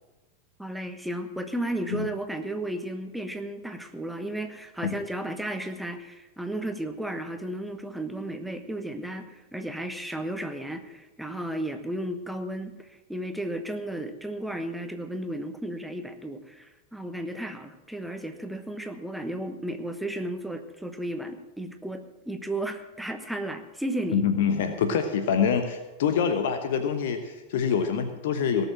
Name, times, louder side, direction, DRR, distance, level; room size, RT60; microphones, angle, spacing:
voice 1, 0.6-24.2, right 1 dB, ahead, 7 dB, 1.2 m, -34 dB
voice 2, 24.1-28.7, left 7 dB, 55° left, 8 dB, 1.0 m, -25 dB
18.0 x 6.9 x 7.5 m, 1.1 s
figure-of-eight pair, 90°, 0 cm